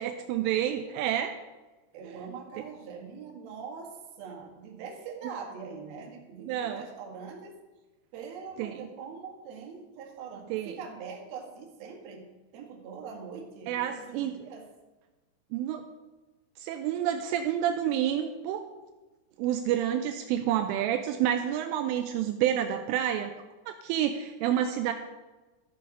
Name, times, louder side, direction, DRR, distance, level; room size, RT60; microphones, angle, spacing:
voice 1, 0.0-1.3 6.5-6.9 8.6-8.9 10.5-10.8 13.7-14.5 15.5-15.9 16.6-18.7 19.4-23.3 23.7-24.9, right 10 dB, 85° right, 6 dB, 3.1 m, -29 dB
voice 2, 1.9-7.5 8.1-12.2 12.5-14.7, right 5 dB, 60° right, 0 dB, 3.2 m, -43 dB
14.0 x 7.7 x 5.3 m, 1.2 s
omnidirectional pair, 5.8 m